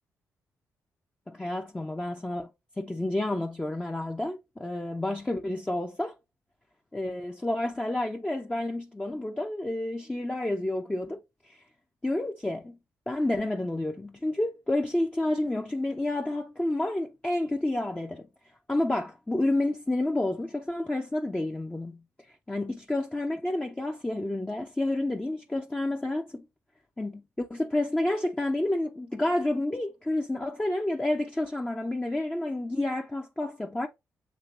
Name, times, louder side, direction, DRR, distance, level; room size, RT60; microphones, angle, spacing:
voice 1, 1.3-2.5 2.8-6.1 6.9-11.6 12.0-12.8 13.1-18.3 18.7-26.4 27.0-33.9, left 1 dB, 15° left, 0.7 m, -30 dB
7.5 x 2.9 x 2.5 m
hypercardioid pair, 40°, 7 cm